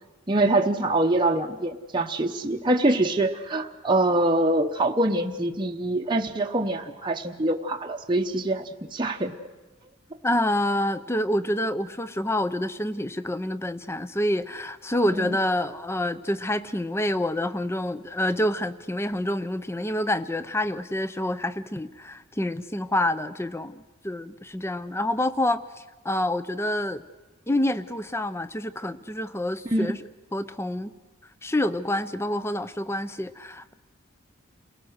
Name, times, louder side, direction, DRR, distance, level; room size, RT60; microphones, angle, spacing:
voice 1, 0.3-9.3 15.1-15.4 29.7-29.9, right 2 dB, 25° right, 2 dB, 0.8 m, -24 dB
voice 2, 10.2-25.6 26.0-27.0 27.5-30.9 31.4-33.7, left 1 dB, 15° left, 14 dB, 0.6 m, -27 dB
29.0 x 18.5 x 6.5 m, 1.2 s
head